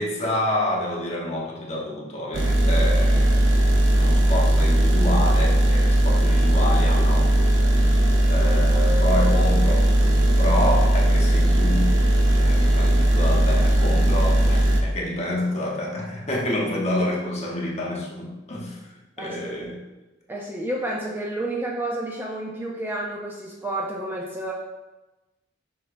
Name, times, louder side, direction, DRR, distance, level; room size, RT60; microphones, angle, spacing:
voice 1, 0.0-3.4 4.0-7.3 8.3-18.8 19.2-19.7, left 1 dB, 35° left, -3 dB, 0.9 m, -28 dB
sound 1, 2.3-14.8, right 1 dB, 70° right, 0.6 m, -18 dB
voice 2, 20.3-24.5, right 1 dB, 10° right, -3 dB, 0.4 m, -30 dB
6.2 x 3.2 x 2.5 m, 1.1 s
head